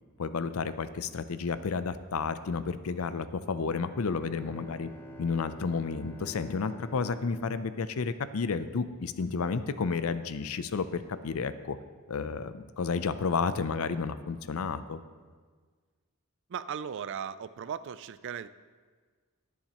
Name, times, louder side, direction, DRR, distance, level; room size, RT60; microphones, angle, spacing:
voice 1, 0.2-4.9 5.2-11.8 12.1-15.0, left 5 dB, 70° left, 13 dB, 0.5 m, -31 dB
Bowed string instrument, 3.7-8.6, equal, 10° left, 0.7 m, -48 dB
voice 2, 16.5-18.5, right 7 dB, 55° right, 15 dB, 0.4 m, -37 dB
20.0 x 7.2 x 3.0 m, 1.5 s
head